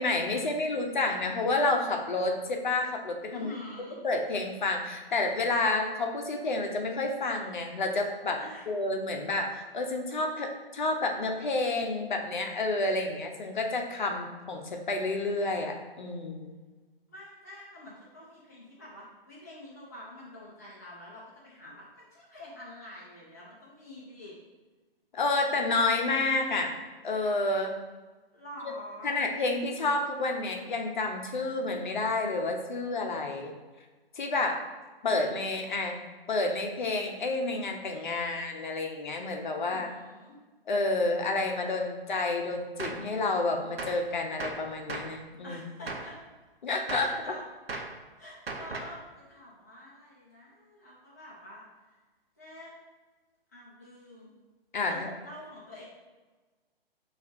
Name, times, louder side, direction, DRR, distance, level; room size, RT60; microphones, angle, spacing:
voice 1, 0.0-3.5 4.0-8.4 8.7-16.6 25.1-26.7 27.0-27.8 29.0-33.5 34.2-34.6 35.0-36.0 36.3-39.9 40.7-45.6 46.6-47.1 54.7-55.1, left 2 dB, 50° left, 3 dB, 0.7 m, -29 dB
voice 2, 3.3-4.0 8.4-8.7 17.1-24.4 28.3-29.2 39.6-40.4 45.4-46.2 46.9-47.4 48.2-51.6 52.4-52.7 53.5-54.3 54.9-55.8, left 1 dB, 20° left, -5 dB, 0.3 m, -47 dB
Gunshot gunfire, 42.8-43.1 43.8-44.1 44.4-45.2 45.9-46.2 46.9-47.2 47.7-48.0 48.5-49.0, right 3 dB, 75° right, 0.7 m, -37 dB
6.3 x 2.5 x 2.5 m, 1.3 s
figure-of-eight pair, 130°, 30 cm